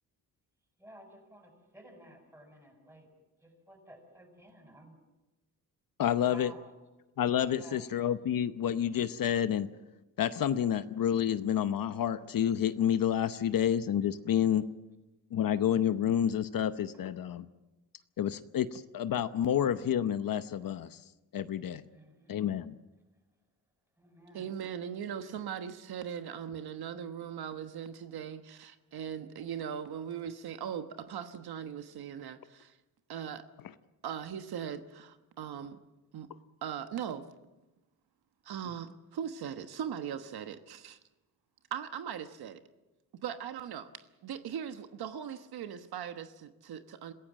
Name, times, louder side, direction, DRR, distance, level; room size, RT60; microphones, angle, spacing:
voice 1, 0.8-3.1 3.4-5.0 6.3-6.7 7.5-8.1 21.9-22.4 24.0-24.5, right 1 dB, 5° right, 4 dB, 6.9 m, -54 dB
voice 2, 6.0-6.5 7.2-9.7 10.2-14.6 15.3-17.5 18.2-21.0 21.3-21.8 22.3-22.7, left 9 dB, 60° left, 12 dB, 0.9 m, -29 dB
voice 3, 24.3-32.7 33.1-33.5 34.0-35.8 36.1-36.3 36.6-37.3 38.4-41.0 41.7-42.6 43.1-43.9 44.2-47.1, right 8 dB, 80° right, 8 dB, 1.3 m, -39 dB
26.5 x 15.5 x 7.5 m, 1.0 s
cardioid pair, 105°, 37 cm